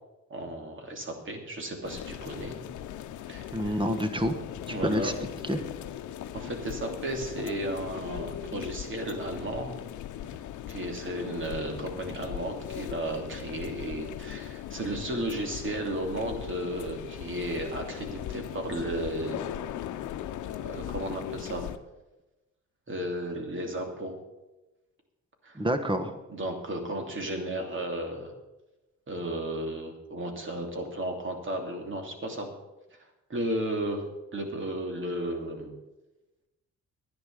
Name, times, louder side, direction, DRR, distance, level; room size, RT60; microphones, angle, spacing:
voice 1, 0.3-2.6 3.3-3.7 4.7-5.1 6.3-9.8 10.7-19.4 20.6-21.7 22.9-24.1 25.4-25.6 26.3-28.3 29.1-32.5 33.3-34.0 34.3-35.7, right 1 dB, 40° right, 3 dB, 2.9 m, -34 dB
sound 1, 1.8-21.8, left 11 dB, 75° left, 0.8 m, -39 dB
voice 2, 3.5-4.4 4.8-5.1 5.4-5.6 25.5-26.2, equal, 15° right, 9 dB, 1.4 m, -27 dB
11.0 x 9.8 x 6.8 m, 1.0 s
cardioid pair, 90°, 30 cm